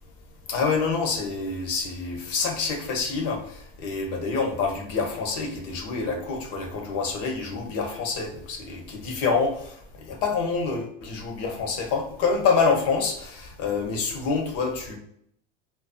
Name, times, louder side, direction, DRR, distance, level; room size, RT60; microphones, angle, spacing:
voice 1, 0.5-15.0, left 4 dB, 55° left, 0.8 m, -27 dB
2.5 x 2.2 x 2.3 m
hypercardioid pair, 85°, 29 cm